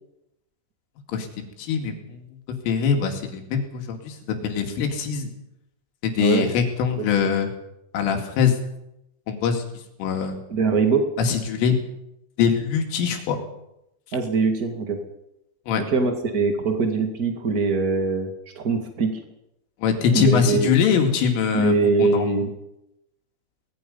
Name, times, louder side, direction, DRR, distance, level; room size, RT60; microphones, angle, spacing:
voice 1, 1.6-2.2 2.7-5.3 6.0-7.5 7.9-8.6 9.3-9.6 10.0-10.4 11.2-11.8 12.4-13.4 15.7-15.8 19.8-22.4, left 7 dB, 85° left, 4 dB, 5.0 m, -23 dB
voice 2, 10.5-11.1 14.1-15.0 15.8-19.2 20.1-20.7 21.5-22.5, right 4 dB, 70° right, 4 dB, 0.8 m, -22 dB
24.0 x 20.0 x 5.5 m, 0.86 s
omnidirectional pair, 5.6 m